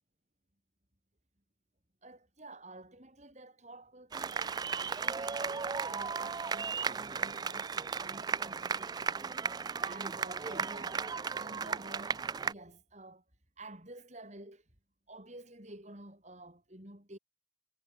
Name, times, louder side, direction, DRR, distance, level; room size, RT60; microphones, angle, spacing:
voice 1, 2.0-9.3 9.5-11.1 11.3-13.2 13.6-14.6 15.1-17.2, right 2 dB, 40° right, 7.2 m, -50 dB
sound 1, 4.1-12.5, right 5 dB, 20° right, 0.3 m, -35 dB
head